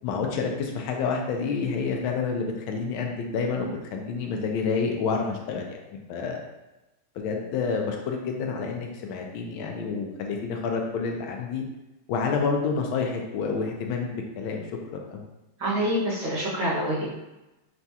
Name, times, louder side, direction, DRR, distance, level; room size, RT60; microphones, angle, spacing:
voice 1, 0.0-5.8 6.1-6.4 7.2-11.6 12.1-15.2, left 5 dB, 80° left, 2 dB, 1.4 m, -29 dB
voice 2, 15.6-17.1, equal, 60° right, -8 dB, 2.0 m, -26 dB
6.0 x 2.3 x 2.7 m, 1.0 s
omnidirectional pair, 2.2 m